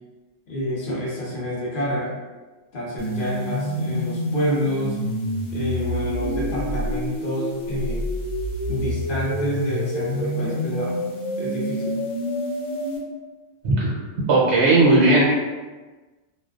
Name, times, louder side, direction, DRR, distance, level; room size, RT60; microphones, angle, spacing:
voice 1, 0.5-2.2 2.7-5.0 5.5-8.0 8.7-11.0 11.4-12.0, equal, 55° left, -5 dB, 0.7 m, -28 dB
sound 1, 3.0-13.0, equal, 85° left, 1.0 m, -27 dB
voice 2, 14.3-15.2, right 2 dB, 65° right, -5 dB, 0.9 m, -16 dB
2.4 x 2.2 x 2.3 m, 1.2 s
omnidirectional pair, 1.3 m